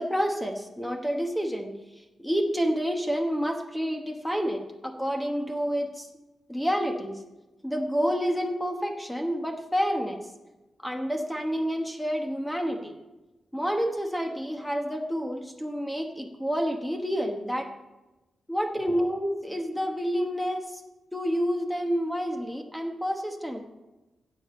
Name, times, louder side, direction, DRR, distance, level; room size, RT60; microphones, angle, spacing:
voice 1, 0.0-1.8 2.2-6.1 6.5-7.2 7.6-10.2 10.8-13.0 13.5-17.7 18.5-20.8 21.1-23.6, equal, 5° left, 4 dB, 1.2 m, -29 dB
16.0 x 7.0 x 4.3 m, 1.1 s
cardioid pair, 75°, 0 cm